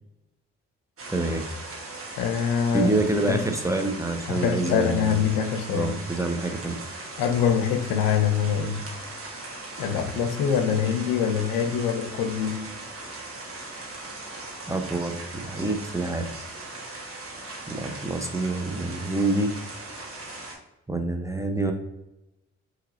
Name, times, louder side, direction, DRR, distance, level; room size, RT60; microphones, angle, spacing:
sound 1, 1.0-20.5, right 2 dB, 40° right, 1.3 m, -39 dB
voice 1, 1.1-1.5 2.7-5.2 5.7-6.8 14.7-16.3 17.7-19.6 20.9-21.7, right 2 dB, 10° right, 5 dB, 0.8 m, -27 dB
voice 2, 2.2-2.9 3.3-3.4 4.3-5.9 7.2-8.9 9.8-12.7, left 7 dB, 80° left, 7 dB, 0.6 m, -24 dB
5.5 x 3.0 x 2.6 m, 0.93 s
hypercardioid pair, 45°, 33 cm